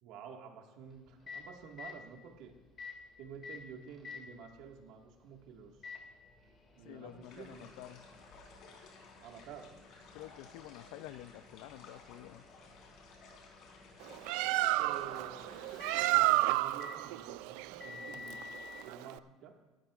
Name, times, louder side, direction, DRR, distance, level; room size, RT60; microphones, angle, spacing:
voice 1, 0.0-2.5 3.2-5.8 6.8-7.7 9.2-9.8 14.8-19.5, right 6 dB, 65° right, 2 dB, 1.7 m, -50 dB
Microwave oven, 0.9-18.9, left 5 dB, 30° left, 2.2 m, -53 dB
voice 2, 6.8-8.1 10.1-12.4, left 15 dB, 80° left, 14 dB, 0.5 m, -49 dB
sound 1, 7.2-16.1, left 4 dB, 55° left, 3.3 m, -57 dB
Bird, 14.0-19.2, right 17 dB, 80° right, 0.3 m, -31 dB
19.5 x 12.5 x 2.5 m, 1.3 s
cardioid pair, 160°, 0 cm